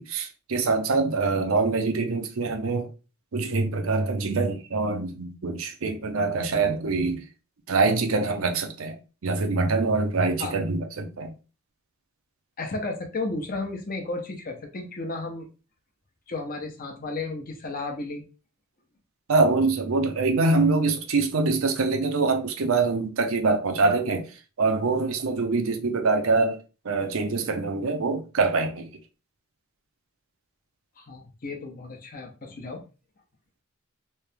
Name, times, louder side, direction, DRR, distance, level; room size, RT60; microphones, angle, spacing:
voice 1, 0.0-2.9 3.3-7.2 7.7-9.0 9.2-11.3 19.3-24.3 24.6-26.6 26.8-28.9, right 3 dB, 70° right, 0.6 m, -24 dB
voice 2, 12.6-15.5 16.3-18.2 31.0-32.8, left 3 dB, 40° left, 0.8 m, -33 dB
3.2 x 2.8 x 3.3 m
head